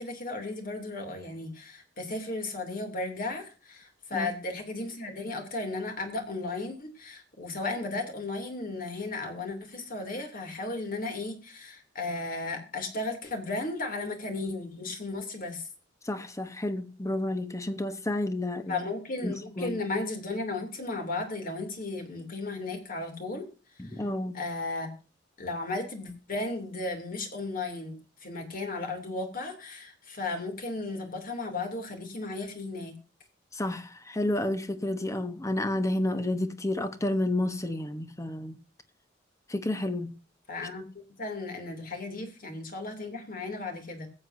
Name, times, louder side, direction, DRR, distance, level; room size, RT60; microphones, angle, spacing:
voice 1, 0.0-15.7 18.7-23.5 23.8-23.9 24.3-24.9 25.4-33.0 40.5-40.9 41.2-44.1, left 2 dB, 45° left, 2.7 m, -35 dB
voice 2, 16.0-18.9 19.2-19.8 23.8-24.4 33.5-38.6 39.5-40.2, left 1 dB, 15° left, 1.0 m, -30 dB
21.5 x 7.8 x 2.6 m
head